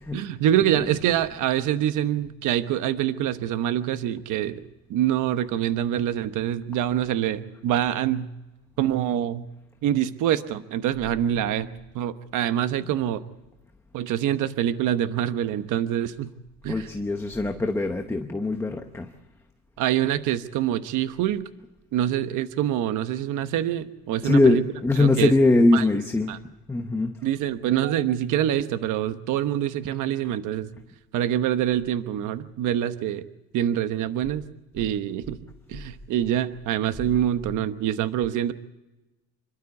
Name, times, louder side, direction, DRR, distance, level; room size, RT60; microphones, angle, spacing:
voice 1, 0.1-4.6 4.9-8.3 8.8-9.5 9.8-13.2 13.9-16.3 16.6-16.9 19.8-21.5 21.9-24.6 25.0-25.3 25.7-25.8 26.3-26.4 27.2-30.7 31.1-33.2 33.5-34.4 34.7-35.4 35.7-38.5, right 11 dB, 55° right, 10 dB, 1.1 m, -25 dB
voice 2, 16.7-19.1 24.2-26.3 26.7-27.1 34.8-34.9 35.7-35.8, left 2 dB, 5° left, 5 dB, 0.9 m, -22 dB
27.5 x 12.5 x 8.4 m, 1.0 s
cardioid pair, 160°, 36 cm